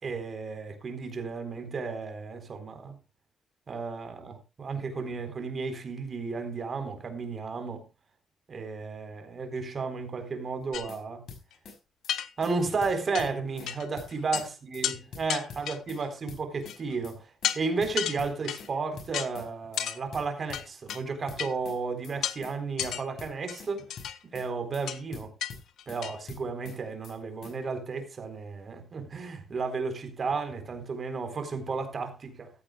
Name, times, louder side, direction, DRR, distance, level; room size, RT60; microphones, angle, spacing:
voice 1, 0.0-3.0 3.7-7.8 8.5-11.2 12.4-23.9 24.3-25.3 25.9-32.5, right 4 dB, 35° right, 3.9 m, -33 dB
sound 1, 10.6-11.0 11.3-11.8 12.0-12.2 12.4-12.5 12.8-13.7 14.0-14.5 14.7-14.9 15.1-16.0 16.3-16.8 17.0-17.2 17.4-17.5 17.8-18.7 19.0-19.5 19.7-19.9 20.1-21.0 21.3-21.8 22.0-22.2 22.4-22.5 22.8-23.7 24.0-24.5 24.7-24.9 25.1-26.0 26.3-26.8 27.0-27.2 27.4-27.5, left 5 dB, 60° left, 5.8 m, -45 dB
big crowbar vs little crowbar, 10.7-10.9 11.5-11.6 12.1-12.7 13.1-13.3 13.7-13.9 14.1-14.5 14.8-15.0 15.3-16.0 16.7-17.0 17.4-17.6 18.0-18.7 19.1-19.3 19.8-20.0 20.5-21.0 21.4-21.5 22.2-22.4 22.8-23.0 23.5-24.2 24.9-25.0 25.4-25.5 25.8-26.2, left 10 dB, 80° left, 1.4 m, -32 dB
15.0 x 14.5 x 2.3 m
cardioid pair, 165°, 0 cm